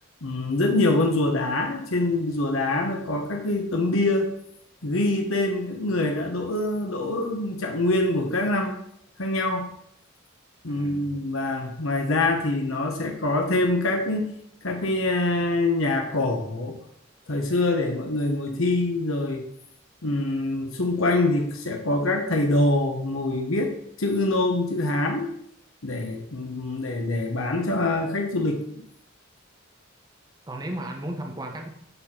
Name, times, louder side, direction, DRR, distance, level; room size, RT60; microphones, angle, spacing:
voice 1, 0.2-4.3 4.8-8.8 9.2-9.7 10.6-14.3 14.6-16.8 17.3-19.4 20.0-23.7 24.0-25.3 25.8-28.8, left 2 dB, 75° left, 3 dB, 1.1 m, -25 dB
voice 2, 10.7-11.1 30.5-31.7, right 1 dB, 20° right, 2 dB, 0.9 m, -34 dB
11.0 x 4.4 x 4.4 m, 0.72 s
head